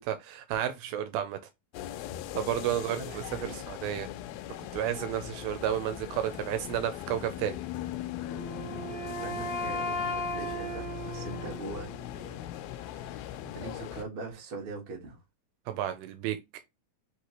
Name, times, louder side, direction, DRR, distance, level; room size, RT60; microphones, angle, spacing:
voice 1, 0.0-1.4 2.3-3.2 3.7-4.1 4.7-7.6 15.7-16.4, right 11 dB, 80° right, 2.4 m, -31 dB
sound 1, 1.7-14.1, left 12 dB, 85° left, 2.4 m, -40 dB
voice 2, 2.7-3.7 4.3-4.6 8.6-11.9 12.2-12.4 12.7-15.2, right 3 dB, 50° right, 1.8 m, -43 dB
Wind instrument woodwind instrument, 8.2-12.2, equal, 45° left, 2.3 m, -36 dB
5.5 x 3.2 x 2.9 m
omnidirectional pair, 4.3 m